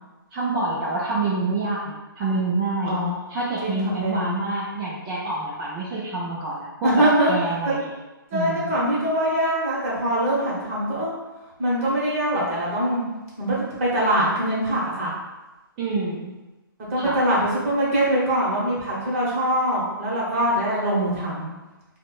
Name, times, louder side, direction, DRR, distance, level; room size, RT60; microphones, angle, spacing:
voice 1, 0.3-3.0 3.3-7.8 8.3-8.7 15.8-16.3 17.0-17.2, right 2 dB, 20° right, -8 dB, 0.4 m, -27 dB
voice 2, 2.8-3.2 3.6-4.3 6.8-7.3 7.6-7.7 8.3-11.1 11.6-13.0 13.4-15.1 16.9-21.5, right 1 dB, 40° right, -5 dB, 1.0 m, -23 dB
4.2 x 2.1 x 2.4 m, 1.1 s
hypercardioid pair, 150°, 12 cm